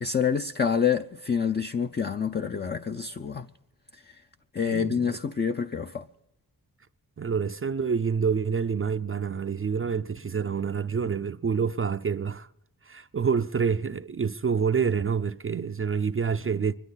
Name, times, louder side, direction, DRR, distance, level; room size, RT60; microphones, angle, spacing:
voice 1, 0.0-3.4 4.5-6.1, left 6 dB, 25° left, 0.5 m, -27 dB
voice 2, 4.6-5.2 7.2-12.5 12.9-16.7, right 6 dB, 35° right, 0.5 m, -27 dB
24.5 x 12.0 x 4.0 m
cardioid pair, 75°, 40 cm